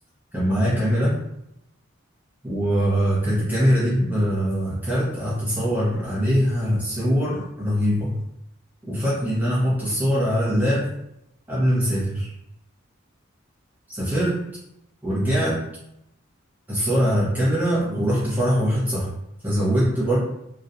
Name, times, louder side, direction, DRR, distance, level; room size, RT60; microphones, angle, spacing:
voice 1, 0.3-1.2 2.4-8.2 8.9-10.9 11.5-12.3 13.9-14.4 15.0-15.6 16.7-19.1 19.4-20.2, equal, 10° right, -9 dB, 0.8 m, -22 dB
2.3 x 2.2 x 2.8 m, 0.83 s
head